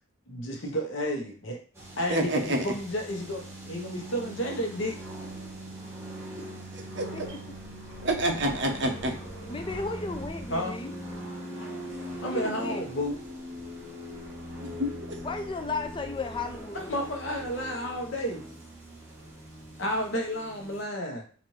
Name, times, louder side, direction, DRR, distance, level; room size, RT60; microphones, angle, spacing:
voice 1, 0.3-1.6 2.0-5.0 10.5-10.7 12.2-13.2 16.7-18.4 19.8-21.4, equal, 75° left, 1 dB, 1.0 m, -31 dB
plane and wind, 1.7-20.8, equal, 15° right, 1.1 m, -41 dB
voice 2, 2.1-2.6 6.7-7.1 8.0-9.2 14.6-14.9, right 1 dB, 60° right, 3 dB, 0.7 m, -27 dB
voice 3, 9.5-10.9 12.2-12.9 15.2-16.9, left 3 dB, 25° left, 6 dB, 0.4 m, -34 dB
4.0 x 2.6 x 3.1 m, 0.42 s
head